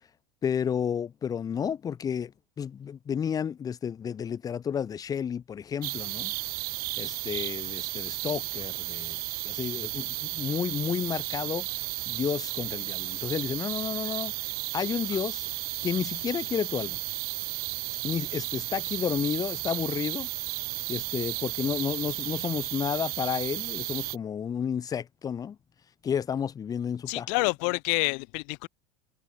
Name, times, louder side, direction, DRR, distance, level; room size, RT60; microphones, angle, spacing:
voice 1, 0.4-2.3 2.6-6.3 7.0-9.2 9.4-11.7 12.1-14.3 14.7-15.5 15.8-17.0 18.0-20.3 20.9-25.6 26.0-27.3, left 8 dB, 20° left, 0.5 m, -31 dB
sound 1, 5.8-24.2, right 22 dB, 55° right, 0.8 m, -34 dB
voice 2, 27.1-28.7, left 40 dB or more, 65° left, 2.0 m, -28 dB
supercardioid pair, 120°, 18 cm